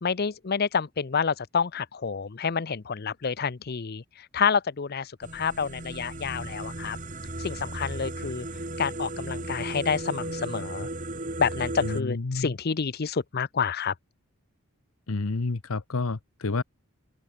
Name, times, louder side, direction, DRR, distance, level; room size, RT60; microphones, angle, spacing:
voice 1, 0.0-7.0 7.4-8.5 8.8-10.9 11.4-13.9, left 6 dB, 45° left, 0.6 m, -28 dB
sound 1, 5.2-12.0, right 2 dB, 35° right, 2.5 m, -35 dB
voice 2, 11.8-12.6 15.1-16.6, left 3 dB, 75° left, 0.9 m, -29 dB
open air
head